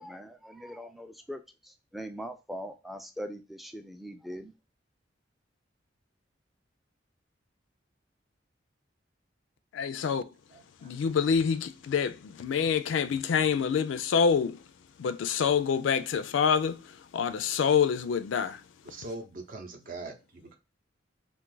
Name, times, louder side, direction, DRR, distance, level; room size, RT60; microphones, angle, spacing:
voice 1, 0.0-4.5, equal, ahead, 0.3 m, -41 dB
voice 2, 9.7-10.2 10.8-14.6 15.0-18.6, left 6 dB, 80° left, 0.4 m, -27 dB
voice 3, 10.5-11.0 18.8-20.6, right 2 dB, 50° right, 0.6 m, -42 dB
2.5 x 2.4 x 3.8 m
head